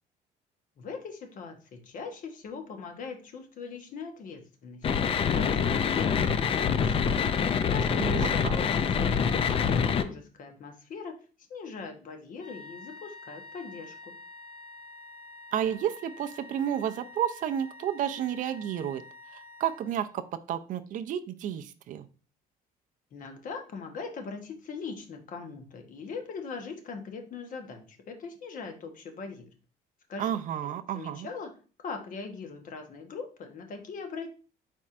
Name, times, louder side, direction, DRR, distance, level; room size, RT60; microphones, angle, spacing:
voice 1, 0.8-11.1 11.5-14.1 23.1-29.5 30.1-30.4 30.6-34.3, left 5 dB, 50° left, 5 dB, 0.9 m, -41 dB
sound 1, 4.8-10.0, left 6 dB, 35° left, 0.4 m, -25 dB
voice 2, 8.0-8.5 15.5-19.0 19.3-20.2 20.5-22.1 30.2-31.3, right 10 dB, 50° right, 9 dB, 0.4 m, -31 dB
sound 2, 12.4-20.3, left 2 dB, 80° left, 2.4 m, -48 dB
4.4 x 4.2 x 2.4 m, 0.36 s
cardioid pair, 110°, 17 cm